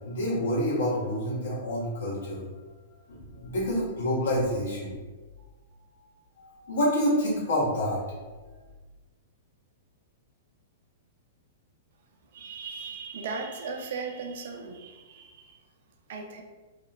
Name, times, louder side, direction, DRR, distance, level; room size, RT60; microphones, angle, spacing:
voice 1, 0.0-2.4 3.1-4.9 6.4-8.0, equal, 65° left, -7 dB, 1.1 m, -28 dB
voice 2, 12.3-15.6 16.1-16.4, right 4 dB, 60° right, 3 dB, 0.4 m, -37 dB
2.9 x 2.2 x 2.2 m, 1.3 s
figure-of-eight pair, 105°, 0 cm